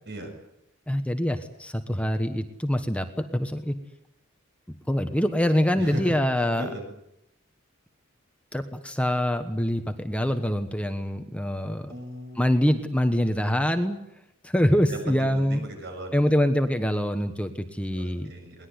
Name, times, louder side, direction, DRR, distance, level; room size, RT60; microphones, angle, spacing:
voice 1, 0.9-3.7 4.9-6.7 8.5-11.9 12.4-14.0 14.4-15.6 16.1-18.3, equal, 5° left, 7 dB, 1.3 m, -25 dB
voice 2, 5.7-6.9 11.9-12.5 14.9-16.3 17.9-18.7, right 1 dB, 55° right, 5 dB, 7.1 m, -37 dB
22.0 x 20.0 x 9.7 m, 0.80 s
head